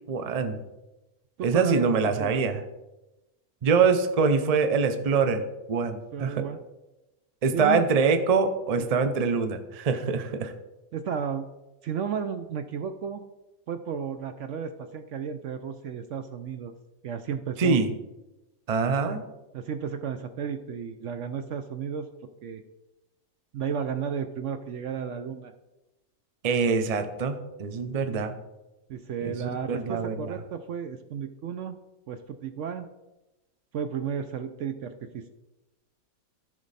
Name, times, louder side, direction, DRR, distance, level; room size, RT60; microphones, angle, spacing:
voice 1, 0.1-0.6 1.4-2.6 3.6-5.4 5.7-6.4 7.4-10.5 17.6-17.9 18.7-19.2 26.4-28.3 29.2-30.3, right 5 dB, 40° right, 8 dB, 0.6 m, -24 dB
voice 2, 1.4-1.9 2.2-2.4 6.1-6.6 7.5-7.8 8.9-9.0 10.9-11.5 11.8-13.2 13.7-16.7 17.0-17.8 19.5-22.1 22.4-22.6 23.5-25.5 28.0-28.2 28.9-31.8 32.1-32.9 33.7-35.3, right 7 dB, 65° right, 9 dB, 0.8 m, -33 dB
14.0 x 5.2 x 4.1 m, 1.0 s
omnidirectional pair, 1.5 m